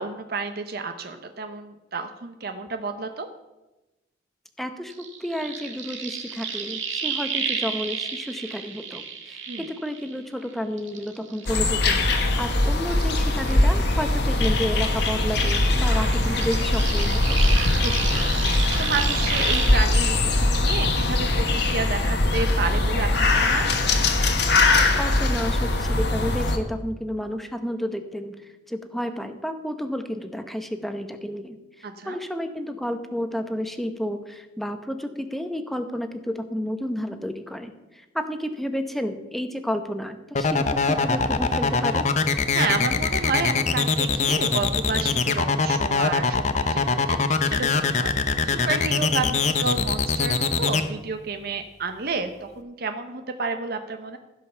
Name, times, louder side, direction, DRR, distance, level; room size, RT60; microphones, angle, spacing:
voice 1, 0.0-3.3 9.5-9.7 17.8-23.7 31.8-32.2 42.5-48.1 48.4-54.2, right 4 dB, 50° right, 7 dB, 0.7 m, -30 dB
voice 2, 4.6-17.4 25.0-42.1, equal, ahead, 7 dB, 0.8 m, -31 dB
sound 1, 4.9-10.4 10.8-14.1 14.4-19.8, right 6 dB, 80° right, 1.8 m, -32 dB
sound 2, 11.5-26.6, left 2 dB, 60° left, 1.4 m, -21 dB
sound 3, 40.3-50.8, left 4 dB, 35° left, 0.7 m, -22 dB
15.5 x 5.4 x 6.8 m, 1.1 s
head